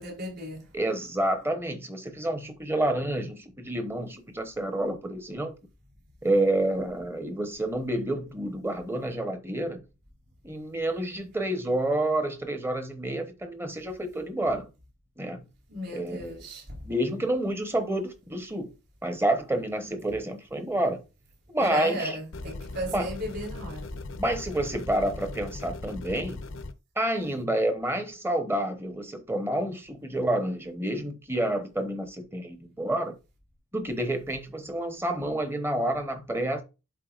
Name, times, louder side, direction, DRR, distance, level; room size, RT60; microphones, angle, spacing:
voice 1, 0.0-0.7 15.7-16.8 21.6-24.0, equal, 45° right, 3.7 m, -35 dB
voice 2, 0.7-5.5 6.2-9.8 10.4-14.7 15.2-15.5 15.9-16.4 16.8-18.7 19.0-21.0 21.5-22.2 22.9-23.1 24.2-26.4 27.0-33.1 33.7-36.6, right 1 dB, 10° right, 0.9 m, -29 dB
sound 1, 22.3-26.7, left 2 dB, 60° left, 0.7 m, -39 dB
11.5 x 4.2 x 2.4 m
head